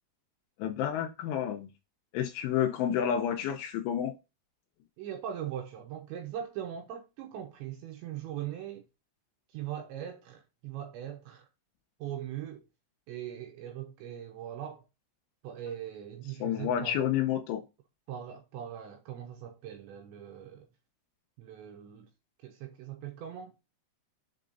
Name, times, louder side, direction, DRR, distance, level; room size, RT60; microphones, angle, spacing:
voice 1, 0.6-1.7 2.1-4.1 16.4-17.6, left 10 dB, 80° left, 3.0 m, -30 dB
voice 2, 5.0-8.8 9.5-11.5 12.0-12.6 13.1-14.9 15.4-17.1 18.1-20.7 21.4-22.1 22.4-23.5, right 10 dB, 75° right, 2.8 m, -40 dB
7.7 x 3.7 x 3.9 m
omnidirectional pair, 5.9 m